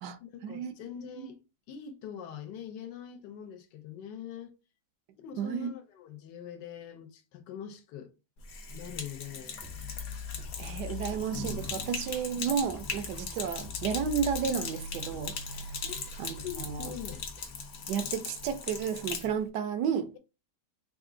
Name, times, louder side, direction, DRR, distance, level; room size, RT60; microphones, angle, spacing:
voice 1, 0.2-1.4 1.7-4.5 5.2-8.1 8.7-9.6 11.0-11.1 15.8-16.0 16.4-17.3, left 8 dB, 80° left, 1.3 m, -43 dB
voice 2, 5.4-5.7 10.6-15.8 16.2-16.9 17.9-20.1, right 7 dB, 75° right, 1.1 m, -32 dB
Sink (filling or washing), 8.4-19.3, left 5 dB, 60° left, 1.1 m, -39 dB
sound 1, 9.6-12.4 12.6-17.6, left 3 dB, 40° left, 0.9 m, -43 dB
3.5 x 2.4 x 3.7 m
omnidirectional pair, 1.9 m